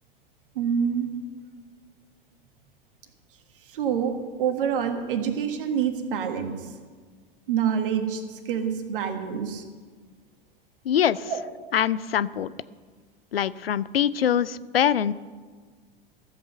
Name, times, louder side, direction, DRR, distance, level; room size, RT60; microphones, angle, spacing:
voice 1, 0.6-1.1 3.7-4.1 4.4-6.7 7.5-9.6 11.2-11.4, right 7 dB, 65° right, 6 dB, 1.7 m, -26 dB
voice 2, 10.9-11.3 11.7-12.5 13.3-15.1, left 9 dB, 80° left, 18 dB, 0.5 m, -23 dB
14.0 x 8.0 x 6.8 m, 1.5 s
figure-of-eight pair, 90°, 29 cm